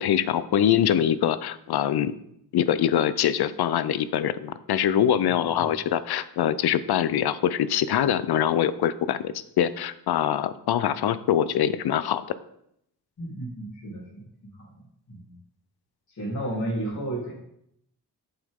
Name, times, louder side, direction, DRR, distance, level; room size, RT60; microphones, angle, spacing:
voice 1, 0.0-2.1 2.5-12.2, left 10 dB, 70° left, 15 dB, 0.6 m, -24 dB
voice 2, 5.3-5.7 13.2-14.3 14.6-14.8 15.1-15.3 16.1-17.3, right 1 dB, 45° left, -3 dB, 3.5 m, -33 dB
8.1 x 7.9 x 3.7 m, 0.74 s
wide cardioid pair, 110°, 40 cm